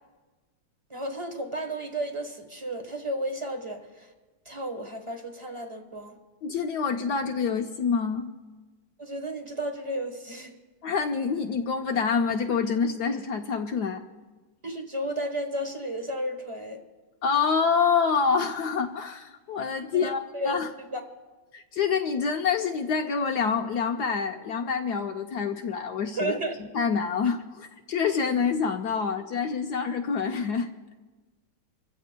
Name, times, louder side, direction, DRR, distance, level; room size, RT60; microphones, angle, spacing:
voice 1, 0.9-4.1 4.4-6.2 9.0-10.5 14.6-16.8 19.8-21.1 26.1-26.5, right 1 dB, 25° right, 5 dB, 0.7 m, -33 dB
voice 2, 6.4-8.3 10.8-14.0 17.2-20.7 21.5-26.3 26.7-30.7, left 5 dB, 70° left, 5 dB, 1.0 m, -27 dB
27.0 x 15.0 x 2.2 m, 1.3 s
omnidirectional pair, 2.3 m